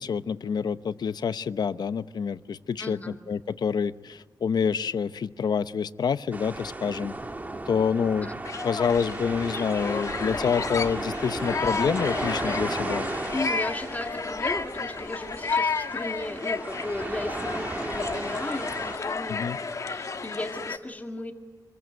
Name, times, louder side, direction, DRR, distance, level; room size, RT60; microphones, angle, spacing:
voice 1, 0.0-7.1 7.7-8.3 8.6-13.1 19.3-19.6, left 6 dB, 85° left, 13 dB, 0.9 m, -27 dB
voice 2, 2.8-3.2 8.2-8.4 13.3-19.4 19.7-21.3, left 2 dB, 20° left, 4 dB, 2.0 m, -35 dB
sound 1, 6.3-19.0, right 2 dB, 25° right, 1.6 m, -35 dB
sound 2, 8.4-20.8, left 4 dB, 50° left, 1.5 m, -32 dB
28.0 x 22.5 x 9.2 m, 1.3 s
wide cardioid pair, 150°, 7 cm